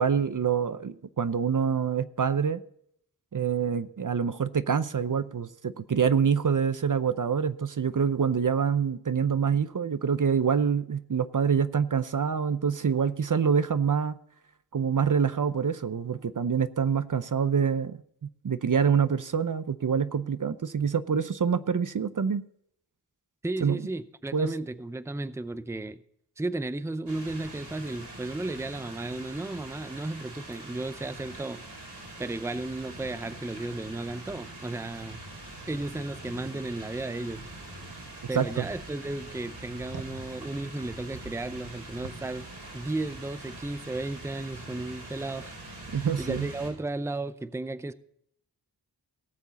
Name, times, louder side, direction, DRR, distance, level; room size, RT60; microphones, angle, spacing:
voice 1, 0.0-2.6 3.3-14.1 14.7-22.4 23.6-23.8 24.3-24.5 38.3-38.7 45.9-46.5, right 6 dB, 50° right, 0.6 m, -26 dB
voice 2, 23.4-26.0 26.4-31.7 32.2-35.2 35.7-37.4 38.3-42.5 42.7-45.5 45.9-47.9, right 2 dB, 5° right, 0.6 m, -34 dB
sound 1, 27.1-46.7, right 2 dB, 85° right, 4.7 m, -43 dB
18.0 x 7.2 x 4.1 m
wide cardioid pair, 65°, 40 cm